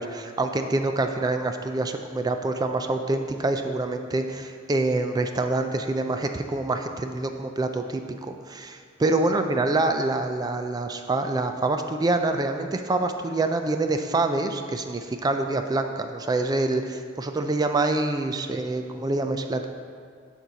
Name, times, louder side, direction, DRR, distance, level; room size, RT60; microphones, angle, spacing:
voice 1, 0.0-19.7, right 2 dB, 20° right, 6 dB, 0.3 m, -26 dB
11.5 x 4.4 x 4.0 m, 2.1 s
head